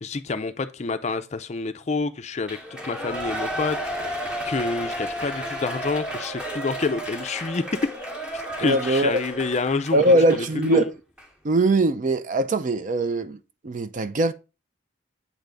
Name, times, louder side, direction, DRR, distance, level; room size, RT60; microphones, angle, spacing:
voice 1, 0.0-3.8 4.0-7.6 8.3-10.9, left 4 dB, 35° left, 0.4 m, -28 dB
Shout / Cheering, 2.4-10.8 11.2-11.3, equal, 5° right, 0.9 m, -32 dB
voice 2, 8.6-9.2 9.9-10.9 11.4-13.4 13.6-14.3, right 2 dB, 40° right, 0.4 m, -21 dB
8.1 x 3.4 x 3.8 m
head